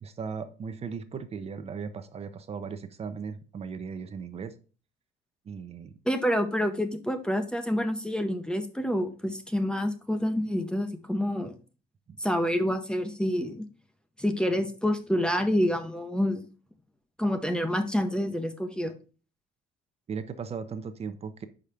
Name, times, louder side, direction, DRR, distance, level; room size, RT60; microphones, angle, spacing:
voice 1, 0.0-4.5 5.4-5.9 12.1-12.2 20.1-21.5, right 5 dB, 35° right, 9 dB, 0.7 m, -37 dB
voice 2, 6.1-11.6 12.2-13.7 14.2-16.5 17.2-18.9, equal, 5° left, 8 dB, 0.7 m, -28 dB
5.1 x 4.8 x 5.6 m, 0.37 s
cardioid pair, 110°, 17 cm